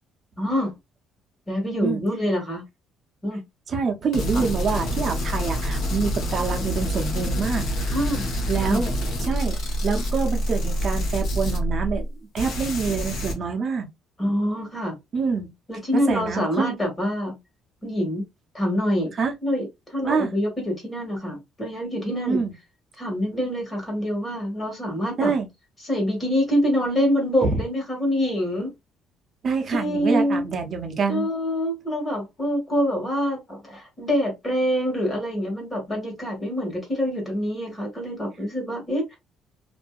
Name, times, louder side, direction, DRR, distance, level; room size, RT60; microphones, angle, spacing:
voice 1, 0.4-0.7 1.5-2.6 3.2-3.4 4.3-4.4 7.9-8.3 8.6-8.8 14.2-14.9 15.7-17.4 17.8-18.2 18.5-19.1 19.4-22.4 23.0-25.3 25.8-28.7 29.7-30.4 31.1-39.2, equal, 20° left, 1.4 m, -25 dB
voice 2, 3.7-7.9 8.5-8.9 9.2-12.1 12.3-13.9 15.1-15.5 15.9-16.7 19.2-19.3 20.0-20.3 22.3-22.5 25.2-25.5 27.4-27.6 29.4-31.3, right 5 dB, 35° right, 0.7 m, -26 dB
sound 1, 4.1-12.1 12.4-13.3, equal, 70° left, 1.1 m, -26 dB
2.6 x 2.6 x 2.3 m
cardioid pair, 145°, 0 cm